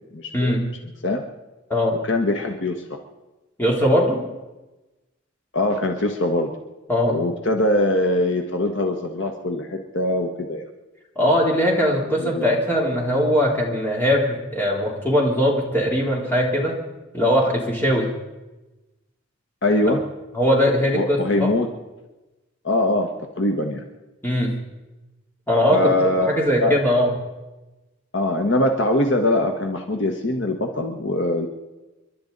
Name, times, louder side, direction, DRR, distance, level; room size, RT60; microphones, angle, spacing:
voice 1, 0.1-0.6 1.0-1.2 2.0-3.0 5.5-6.5 7.1-10.6 12.2-12.5 19.6-20.0 20.9-21.7 22.6-23.1 23.4-23.8 25.7-26.8 28.1-31.5, left 1 dB, 60° left, 3 dB, 1.4 m, -22 dB
voice 2, 3.6-4.2 6.9-7.1 11.1-16.7 17.1-18.1 20.3-21.5 24.2-24.5 25.5-25.8 26.2-27.1, equal, 10° left, -3 dB, 3.3 m, -20 dB
30.0 x 11.5 x 4.0 m, 1.1 s
head